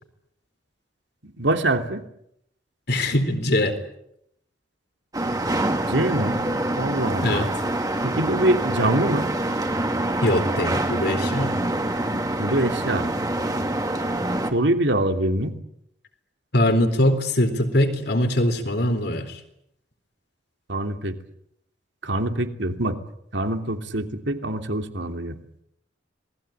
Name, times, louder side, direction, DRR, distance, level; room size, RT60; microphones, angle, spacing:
voice 1, 1.2-2.0 5.9-6.4 6.8-7.5 8.0-9.3 12.4-13.1 14.5-15.5 20.7-21.1 22.0-23.0 23.3-25.6, right 1 dB, 70° right, 6 dB, 2.8 m, -24 dB
voice 2, 2.9-3.8 7.2-7.5 10.2-11.5 16.5-19.4, left 1 dB, 60° left, 8 dB, 4.0 m, -22 dB
sound 1, 5.1-14.5, right 1 dB, 20° right, 2.7 m, -25 dB
27.0 x 20.0 x 8.9 m, 0.76 s
head